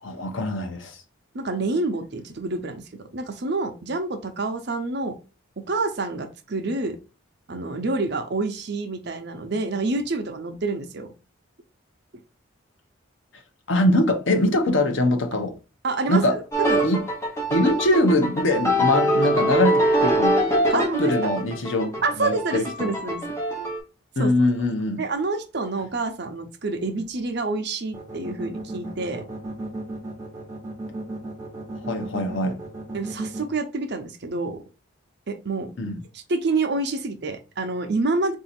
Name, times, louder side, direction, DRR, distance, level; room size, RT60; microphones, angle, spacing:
voice 1, 0.0-1.0 13.7-15.5 16.1-16.4 16.8-17.0 17.5-22.9 24.2-25.0 31.7-32.6 35.8-36.0, left 1 dB, 65° left, 0.8 m, -23 dB
voice 2, 1.3-5.1 5.6-7.0 7.5-11.1 15.8-16.9 20.7-21.3 22.0-23.2 24.2-24.3 25.0-29.2 32.9-34.6 35.3-38.4, right 3 dB, 50° right, 0.6 m, -28 dB
sound 1, 16.5-23.8, right 1 dB, 15° left, 0.9 m, -23 dB
sound 2, 27.9-33.4, right 2 dB, 15° right, 1.1 m, -34 dB
3.9 x 2.7 x 4.2 m
head